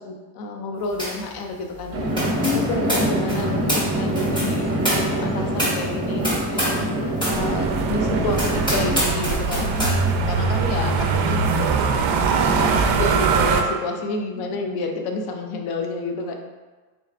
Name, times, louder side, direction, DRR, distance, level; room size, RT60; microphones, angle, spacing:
voice 1, 0.0-2.0 2.5-6.7 7.3-9.8 10.3-11.7 12.5-16.3, left 2 dB, 55° left, 3 dB, 0.6 m, -29 dB
sound 1, 1.0-1.3 1.5-6.9 7.2-7.4 7.9-8.0 8.3-10.0, equal, 10° left, 1.0 m, -27 dB
sound 2, 1.9-9.0, right 1 dB, 30° right, 0.8 m, -25 dB
voice 2, 2.4-3.2 6.9-7.5 9.6-10.1 10.4-10.6 14.3-14.6, left 4 dB, 10° right, -6 dB, 0.4 m, -32 dB
sound 3, 7.3-13.6, right 5 dB, 60° right, 0.5 m, -22 dB
3.9 x 3.3 x 2.4 m, 1.3 s
cardioid pair, 150°, 46 cm